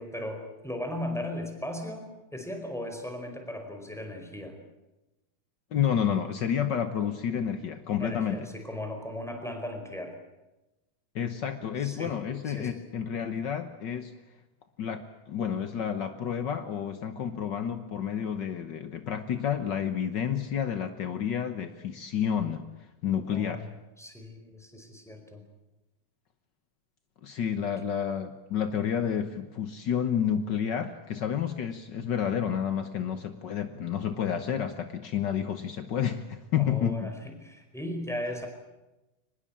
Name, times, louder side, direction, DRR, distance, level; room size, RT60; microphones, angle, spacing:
voice 1, 0.0-4.6 8.0-10.1 11.8-12.8 23.3-23.7 24.0-25.4 36.6-38.5, left 1 dB, ahead, 4 dB, 4.5 m, -37 dB
voice 2, 5.7-8.4 11.1-14.1 14.8-22.7 23.0-23.7 27.2-37.1, left 8 dB, 70° left, 10 dB, 1.0 m, -30 dB
24.0 x 20.5 x 8.7 m, 1.0 s
omnidirectional pair, 3.6 m